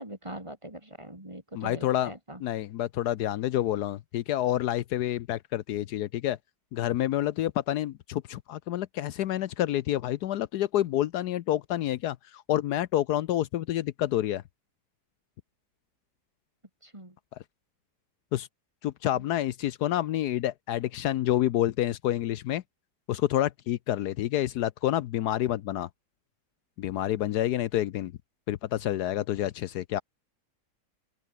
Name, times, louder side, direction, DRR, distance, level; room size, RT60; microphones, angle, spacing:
voice 1, 0.0-2.4 16.8-17.2 19.1-19.3, right 1 dB, 15° right, 3.4 m, -42 dB
voice 2, 1.6-2.1 2.4-6.4 6.7-14.4 18.3-18.5 18.8-22.6 23.1-25.9 26.8-28.1 28.5-30.0, left 13 dB, 75° left, 1.2 m, -28 dB
open air
omnidirectional pair, 1.8 m